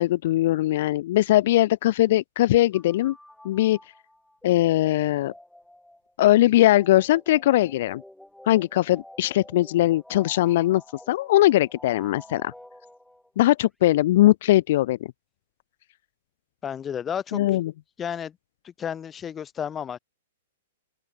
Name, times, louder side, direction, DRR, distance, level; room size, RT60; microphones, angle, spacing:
voice 1, 0.0-3.1 3.4-3.8 4.4-5.3 6.2-8.0 8.5-10.8 11.1-12.5 13.4-15.0 17.3-17.7, left 15 dB, 60° left, 0.4 m, -20 dB
sound 1, 2.7-13.5, left 1 dB, ahead, 2.3 m, -49 dB
voice 2, 16.6-17.4 18.0-18.4 18.6-20.0, left 8 dB, 20° left, 0.8 m, -32 dB
open air
hypercardioid pair, 125°, 0 cm